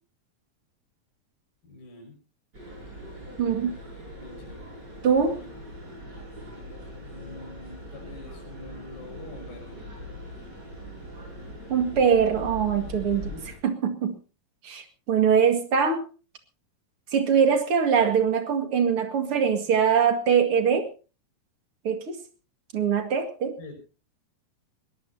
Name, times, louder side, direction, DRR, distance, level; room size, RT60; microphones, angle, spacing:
voice 1, 1.6-2.2 4.2-4.7 5.3-5.5 7.0-9.8 13.0-13.4 23.6-23.8, left 2 dB, 85° left, 2 dB, 7.9 m, -45 dB
sound 1, 2.5-13.5, equal, 30° right, 7.7 m, -41 dB
voice 2, 3.4-3.8 5.0-5.4 11.7-13.3 13.6-14.1 14.6-16.1 17.1-20.9 21.8-22.2 22.7-23.6, right 7 dB, 45° right, 7 dB, 2.5 m, -22 dB
21.5 x 17.5 x 2.8 m, 0.34 s
omnidirectional pair, 4.0 m